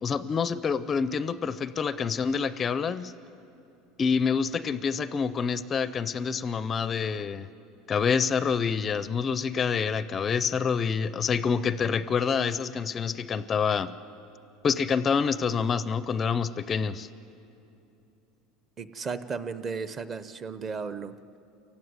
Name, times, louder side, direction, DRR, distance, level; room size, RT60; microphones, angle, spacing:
voice 1, 0.0-3.1 4.0-7.5 7.9-13.9 14.6-17.1, left 6 dB, 20° left, 15 dB, 0.4 m, -27 dB
voice 2, 18.8-21.1, right 5 dB, 25° right, 13 dB, 0.7 m, -34 dB
28.0 x 15.5 x 9.6 m, 2.9 s
cardioid pair, 160°, 0 cm